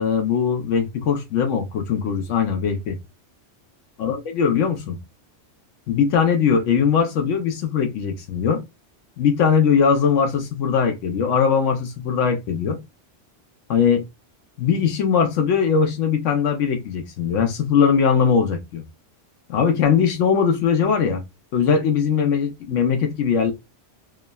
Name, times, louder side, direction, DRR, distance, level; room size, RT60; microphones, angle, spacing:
voice 1, 0.0-3.0 4.0-5.0 5.9-8.6 9.2-12.8 13.7-14.0 14.6-18.8 19.5-21.2 21.5-23.5, left 6 dB, 85° left, 1.0 m, -20 dB
3.5 x 2.0 x 2.2 m
omnidirectional pair, 1.2 m